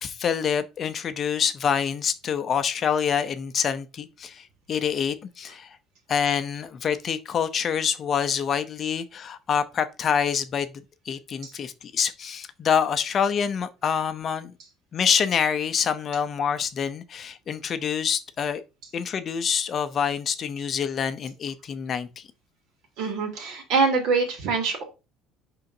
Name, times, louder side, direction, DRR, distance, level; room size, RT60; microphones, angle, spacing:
voice 1, 0.0-5.8 6.1-10.7 11.1-14.5 14.9-18.6 18.9-22.2, left 7 dB, 30° left, 0.6 m, -26 dB
voice 2, 23.0-24.8, right 4 dB, 60° right, 2.9 m, -24 dB
11.0 x 3.9 x 2.7 m
cardioid pair, 180°, 0 cm